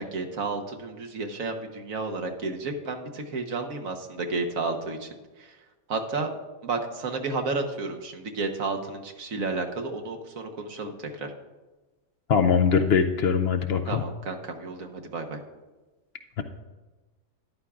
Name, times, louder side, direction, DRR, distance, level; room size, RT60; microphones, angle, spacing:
voice 1, 0.0-5.1 5.4-5.6 5.9-6.3 6.6-11.3 13.9-15.4, right 3 dB, 80° right, 4 dB, 1.5 m, -32 dB
voice 2, 12.3-14.0 16.4-16.5, left 6 dB, 60° left, 7 dB, 0.7 m, -22 dB
13.5 x 11.5 x 2.4 m, 1.2 s
omnidirectional pair, 1.4 m